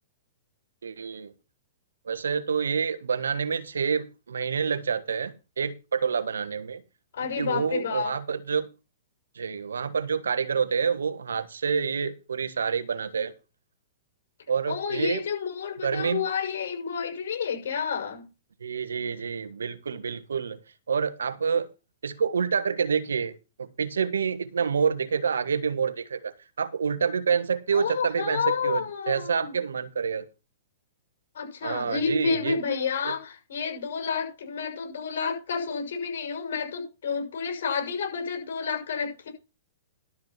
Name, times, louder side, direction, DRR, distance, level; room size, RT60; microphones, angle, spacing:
voice 1, 0.8-1.3 2.1-6.8 7.4-8.7 9.3-13.3 14.5-15.2 15.8-16.2 18.6-20.6 20.9-21.7 22.0-30.2 31.6-32.6 33.0-33.1, right 6 dB, 85° right, 1.4 m, -28 dB
voice 2, 7.1-8.1 14.7-18.2 27.7-29.6 31.3-39.3, left 6 dB, 70° left, 6.1 m, -30 dB
12.5 x 6.3 x 5.8 m
hypercardioid pair, 125°, 0 cm